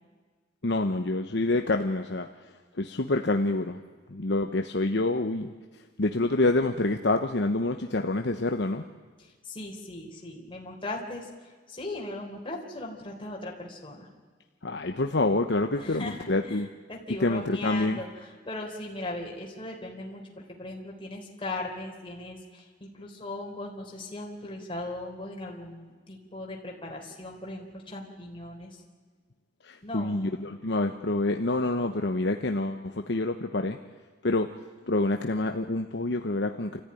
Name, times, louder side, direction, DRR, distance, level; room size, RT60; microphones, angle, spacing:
voice 1, 0.6-2.3 2.8-3.8 4.1-5.5 6.0-8.8 14.6-16.7 17.2-18.0 29.6-33.8 34.2-34.5 34.9-36.8, left 2 dB, 70° left, 5 dB, 1.0 m, -27 dB
voice 2, 9.2-11.3 11.7-14.1 15.8-28.8 29.8-30.2, left 2 dB, 30° left, -1 dB, 3.8 m, -38 dB
27.5 x 14.5 x 10.0 m, 1.5 s
head